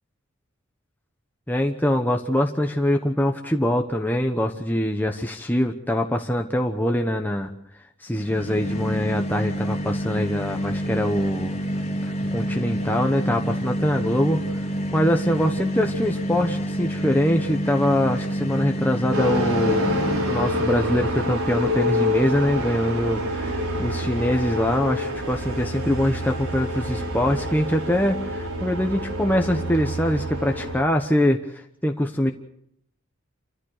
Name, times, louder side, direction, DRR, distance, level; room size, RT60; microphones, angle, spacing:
voice 1, 1.5-7.5 8.0-11.6 12.0-14.4 14.9-32.3, left 1 dB, 10° left, 3 dB, 1.1 m, -23 dB
sound 1, 8.1-20.7, equal, 30° left, 2.5 m, -28 dB
sound 2, 19.1-30.8, left 1 dB, 75° right, 4.5 m, -27 dB
28.5 x 14.5 x 6.7 m, 0.74 s
head